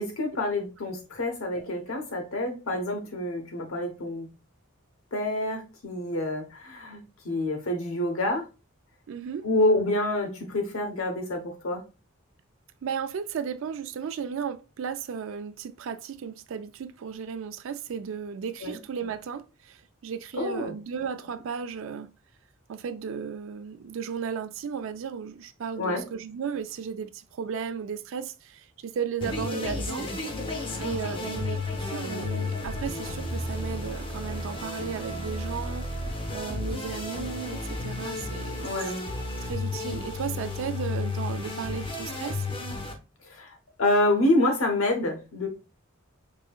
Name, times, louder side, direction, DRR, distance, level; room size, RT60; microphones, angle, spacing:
voice 1, 0.0-4.3 5.1-8.4 9.4-11.8 18.6-18.8 20.3-20.7 25.8-26.0 30.7-31.3 38.6-39.0 43.2-45.5, left 1 dB, 85° left, 1.1 m, -27 dB
voice 2, 9.1-9.5 12.8-22.1 22.7-30.1 30.8-35.9 36.3-38.6 39.4-42.4, right 6 dB, 70° right, 0.4 m, -35 dB
sound 1, 29.2-42.9, left 2 dB, 25° left, 0.6 m, -33 dB
4.7 x 2.8 x 2.4 m
head